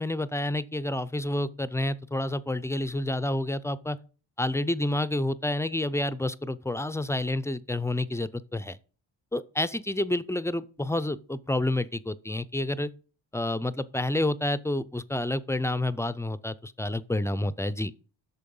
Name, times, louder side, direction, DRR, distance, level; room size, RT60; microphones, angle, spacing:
voice 1, 0.0-4.0 4.4-8.8 9.3-12.9 13.3-17.9, left 1 dB, 5° left, 0.3 m, -29 dB
8.6 x 6.5 x 5.4 m
cardioid pair, 95°, 48 cm